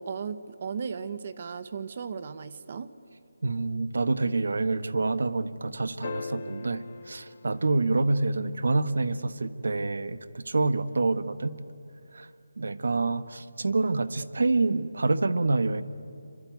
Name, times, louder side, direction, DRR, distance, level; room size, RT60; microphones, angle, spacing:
voice 1, 0.0-2.9, right 6 dB, 35° right, 13 dB, 0.9 m, -36 dB
voice 2, 3.4-11.5 12.1-12.3 12.6-15.8, right 3 dB, 70° right, 13 dB, 1.4 m, -27 dB
sound 1, 6.0-8.6 10.8-10.9, left 4 dB, 30° left, 1.0 m, -41 dB
26.5 x 24.0 x 9.4 m, 2.6 s
figure-of-eight pair, 170°, 0 cm